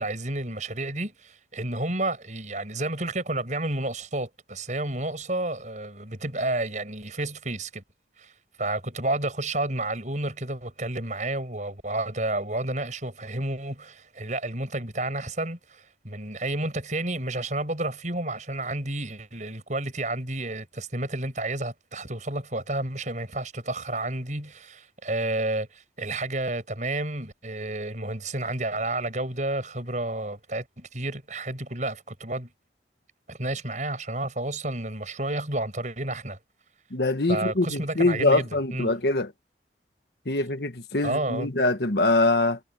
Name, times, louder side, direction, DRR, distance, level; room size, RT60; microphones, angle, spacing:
voice 1, 0.0-7.8 8.2-8.3 8.6-32.5 33.3-36.4 37.3-38.9 41.0-41.5, right 2 dB, 45° right, 7.5 m, -31 dB
voice 2, 36.9-39.3 40.2-42.6, left 2 dB, 65° left, 1.5 m, -23 dB
head